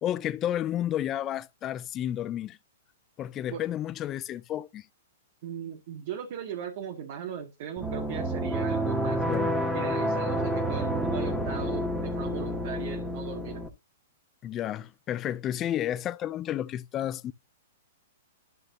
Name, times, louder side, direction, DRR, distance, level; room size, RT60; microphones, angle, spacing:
voice 1, 0.0-2.6 3.2-4.8 9.3-9.5 14.4-17.3, left 11 dB, 25° left, 0.4 m, -31 dB
voice 2, 5.4-9.2 9.7-13.7, right 8 dB, 55° right, 2.0 m, -38 dB
sound 1, 7.8-13.7, equal, 5° right, 1.7 m, -29 dB
12.0 x 6.3 x 2.8 m
hypercardioid pair, 140°, 0 cm